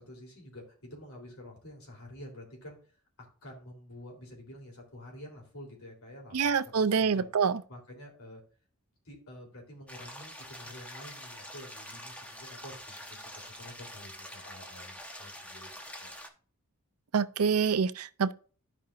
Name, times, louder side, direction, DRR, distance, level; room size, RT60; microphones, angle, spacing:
voice 1, 0.0-2.8 3.4-7.3 7.7-8.4 9.1-16.1, left 1 dB, 65° left, 3.6 m, -49 dB
voice 2, 6.3-7.6 17.1-18.3, right 6 dB, 75° right, 0.6 m, -26 dB
sound 1, 9.9-16.3, equal, 5° left, 1.1 m, -46 dB
13.0 x 5.3 x 2.6 m
head